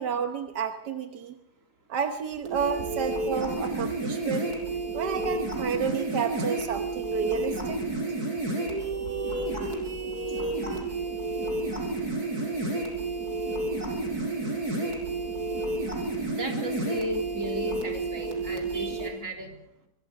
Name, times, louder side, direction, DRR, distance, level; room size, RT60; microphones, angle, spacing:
voice 1, 0.0-1.3 1.9-4.5 4.9-7.8, right 7 dB, 85° right, 6 dB, 1.7 m, -30 dB
sound 1, 2.5-19.1, right 2 dB, 65° right, 5.5 m, -31 dB
voice 2, 12.5-13.6 14.3-15.8 16.2-19.6, equal, 50° right, 1 dB, 4.0 m, -37 dB
24.5 x 22.0 x 4.9 m, 0.84 s
omnidirectional pair, 1.8 m